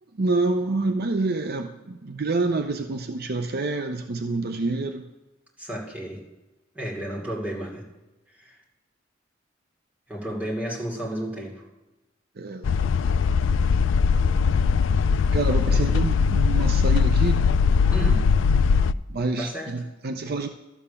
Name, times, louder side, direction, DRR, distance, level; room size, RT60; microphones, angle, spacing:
voice 1, 0.2-5.0 12.4-12.9 15.3-17.4 19.1-20.5, right 3 dB, 50° right, 7 dB, 0.6 m, -27 dB
voice 2, 5.6-6.2 6.7-7.8 8.4-8.6 10.1-11.6 15.7-16.0 17.9-18.3 19.4-19.8, right 1 dB, 10° right, -4 dB, 2.8 m, -32 dB
sound 1, 12.6-18.9, left 5 dB, 70° left, 0.3 m, -20 dB
12.5 x 7.0 x 7.0 m, 1.1 s
head